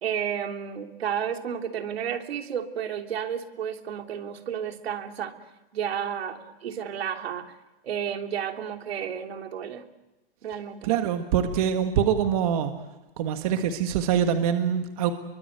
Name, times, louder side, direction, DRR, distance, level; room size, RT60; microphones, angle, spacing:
voice 1, 0.0-5.4 5.7-7.5 7.8-9.8 10.4-10.9, right 8 dB, 75° right, 5 dB, 3.2 m, -32 dB
voice 2, 10.8-12.7 13.2-15.1, right 8 dB, 35° right, 7 dB, 1.7 m, -24 dB
29.0 x 24.0 x 8.0 m, 1.0 s
supercardioid pair, 175°, 31 cm